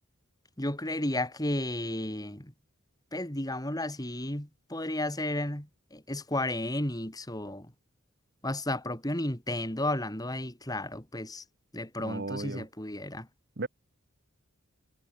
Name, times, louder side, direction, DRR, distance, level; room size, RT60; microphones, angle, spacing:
voice 1, 0.6-2.5 3.1-7.7 8.4-11.4 11.7-13.3, left 1 dB, 15° left, 3.6 m, -33 dB
voice 2, 12.0-12.7 13.6-13.7, right 2 dB, 50° right, 1.3 m, -35 dB
head